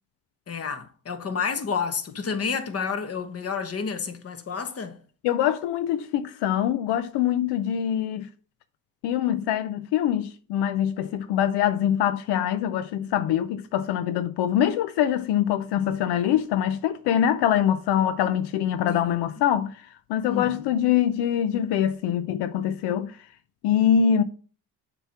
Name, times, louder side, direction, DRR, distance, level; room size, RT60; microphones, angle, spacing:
voice 1, 0.5-4.9 18.9-19.2 20.3-20.7, left 5 dB, 35° left, 1.1 m, -30 dB
voice 2, 5.2-8.3 9.0-23.2 23.6-24.2, left 10 dB, 80° left, 0.5 m, -24 dB
6.8 x 3.0 x 5.8 m
cardioid pair, 80°, 40 cm